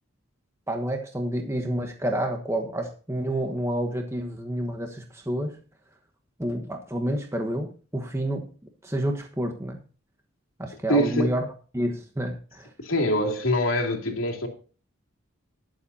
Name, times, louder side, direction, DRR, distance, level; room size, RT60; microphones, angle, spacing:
voice 1, 0.7-5.6 6.4-8.5 8.8-9.8 10.6-11.5 11.7-12.7, right 1 dB, 15° right, 3 dB, 1.2 m, -29 dB
voice 2, 10.9-11.3 12.8-14.5, equal, 85° left, 2 dB, 2.7 m, -24 dB
20.5 x 7.3 x 2.8 m, 0.37 s
head